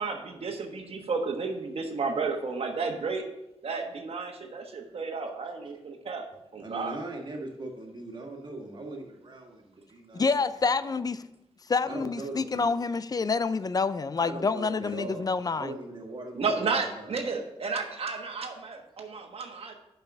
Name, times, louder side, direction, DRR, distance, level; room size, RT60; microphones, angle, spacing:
voice 1, 0.0-3.2 3.6-6.3 6.5-7.0 16.3-19.7, right 4 dB, 65° right, 3 dB, 1.3 m, -32 dB
voice 2, 6.6-10.3 10.8-11.0 11.8-12.6 14.2-17.2, right 2 dB, 45° right, 0 dB, 1.9 m, -40 dB
voice 3, 10.1-11.2 11.7-15.7, left 4 dB, 35° left, 15 dB, 0.4 m, -27 dB
5.8 x 5.6 x 6.4 m, 0.87 s
cardioid pair, 80°, 11 cm